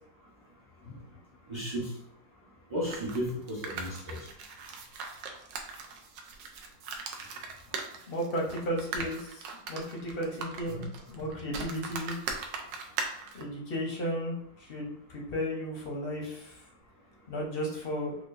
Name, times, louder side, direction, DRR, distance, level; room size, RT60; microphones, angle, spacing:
voice 1, 1.5-1.9 2.7-4.3 10.7-10.8, equal, 35° right, -5 dB, 0.4 m, -34 dB
sound 1, 2.8-13.4, right 4 dB, 90° right, 1.3 m, -39 dB
voice 2, 8.1-12.2 13.3-16.6 17.3-18.2, equal, 50° left, -2 dB, 0.7 m, -34 dB
4.8 x 2.3 x 2.5 m, 0.73 s
omnidirectional pair, 1.9 m